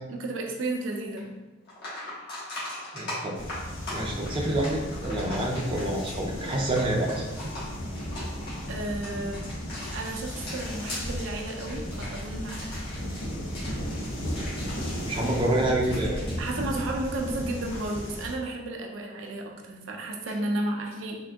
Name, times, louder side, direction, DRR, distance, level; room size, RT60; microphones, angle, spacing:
voice 1, 0.1-1.2 8.7-9.5 9.9-12.8 16.4-21.2, right 2 dB, 90° right, 1 dB, 0.5 m, -33 dB
sound 1, 1.2-1.3 1.7-17.3 17.5-17.8 20.3-20.4, left 1 dB, 60° left, 1.3 m, -40 dB
voice 2, 2.9-3.6 3.9-7.2 15.0-16.2, right 1 dB, 25° right, -2 dB, 0.4 m, -28 dB
sound 2, 3.3-18.3, equal, 80° left, 0.7 m, -35 dB
3.6 x 2.5 x 2.3 m, 1.2 s
head